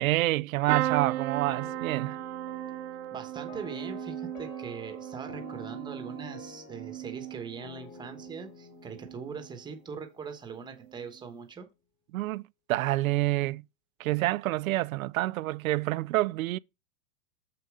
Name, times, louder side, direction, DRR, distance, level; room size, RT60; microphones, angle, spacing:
voice 1, 0.0-2.2 12.1-13.6 14.0-16.6, right 18 dB, 80° right, 0.5 m, -28 dB
sound 1, 0.7-8.5 8.9-9.5 10.7-10.9 11.2-11.3, right 15 dB, 55° right, 0.9 m, -36 dB
sound 2, 1.5-10.6, left 6 dB, 25° left, 2.6 m, -49 dB
voice 2, 3.1-11.7, right 5 dB, 10° right, 1.1 m, -41 dB
6.9 x 6.7 x 3.6 m
supercardioid pair, 150°, 40 cm